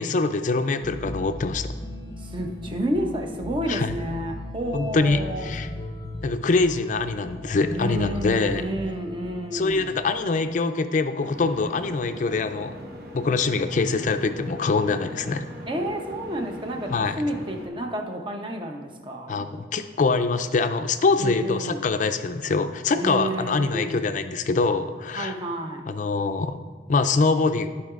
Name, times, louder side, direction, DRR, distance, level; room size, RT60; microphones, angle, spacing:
voice 1, 0.0-1.7 3.7-3.9 4.7-5.7 6.2-8.6 9.5-12.7 13.1-15.4 16.9-17.1 19.3-25.3 25.9-26.6 26.9-27.7, left 3 dB, 45° left, 9 dB, 0.4 m, -24 dB
sound 1, 0.8-10.4, left 1 dB, 20° left, 0.8 m, -37 dB
voice 2, 2.2-5.5 7.7-10.0 15.7-19.4 21.2-21.8 22.9-24.0 25.2-25.9, right 1 dB, 30° right, 3 dB, 0.8 m, -30 dB
sound 2, 11.2-17.7, equal, 60° right, 1.1 m, -40 dB
14.0 x 4.7 x 2.5 m, 1.4 s
head